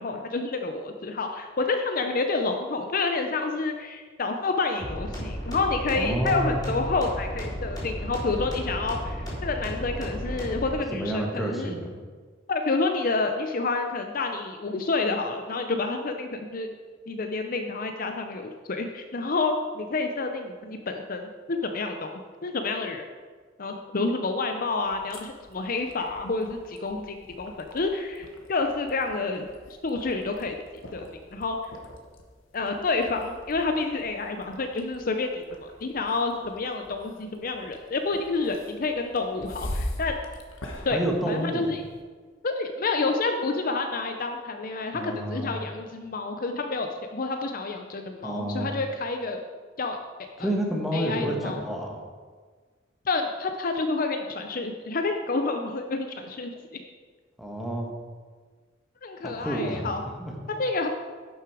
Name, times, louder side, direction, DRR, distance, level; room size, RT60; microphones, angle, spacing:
voice 1, 0.0-11.7 12.5-16.7 17.1-23.0 23.6-29.5 29.8-30.5 30.9-31.6 32.5-40.2 40.8-41.0 41.3-41.8 42.4-49.4 49.8-50.0 50.4-50.5 50.9-51.6 53.1-56.8 59.0-60.0 60.5-60.9, left 3 dB, 45° left, 5 dB, 0.6 m, -29 dB
sound 1, 4.8-10.7, equal, 20° left, 3.1 m, -34 dB
voice 2, 5.9-6.6 10.9-11.9 40.9-41.7 44.9-45.5 48.2-48.7 50.4-52.0 57.4-57.9 59.2-59.9 60.2-60.4, right 1 dB, ahead, -1 dB, 1.4 m, -29 dB
sound 2, 24.8-42.0, left 1 dB, 90° left, 1.3 m, -42 dB
11.0 x 6.3 x 4.9 m, 1.5 s
head